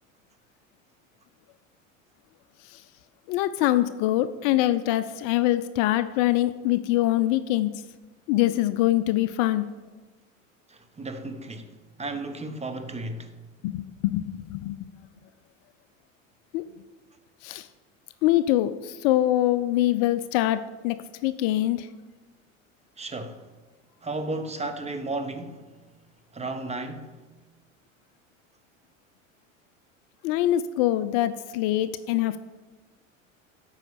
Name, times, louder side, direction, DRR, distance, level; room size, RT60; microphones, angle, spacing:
voice 1, 3.3-7.7 8.3-9.7 13.6-14.8 16.5-16.6 17.4-17.7 18.2-21.9 30.2-32.4, left 14 dB, 50° left, 0.5 m, -24 dB
voice 2, 10.7-13.3 23.0-23.4 24.0-25.6 26.3-27.2, right 2 dB, 15° right, 1.1 m, -34 dB
9.0 x 5.6 x 6.8 m
figure-of-eight pair, 70°, 39 cm